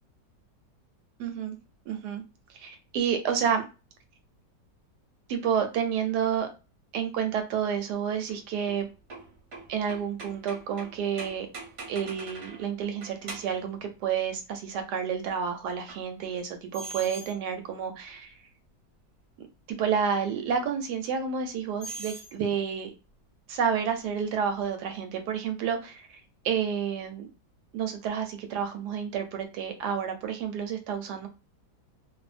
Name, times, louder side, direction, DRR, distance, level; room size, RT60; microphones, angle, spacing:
voice 1, 1.2-1.6 1.9-2.2 2.5-3.6 5.3-6.5 6.9-8.9 9.7-11.5 11.9-18.3 19.7-22.9 23.5-27.3 27.7-31.3, right 7 dB, 75° right, 6 dB, 1.1 m, -30 dB
sound 1, 8.3-12.7 13.0-13.7 15.9-16.0 16.7-17.4 18.1-18.2 20.5-20.6 21.8-22.4, right 3 dB, 50° right, 0.8 m, -42 dB
2.6 x 2.3 x 2.4 m, 0.31 s
omnidirectional pair, 1.8 m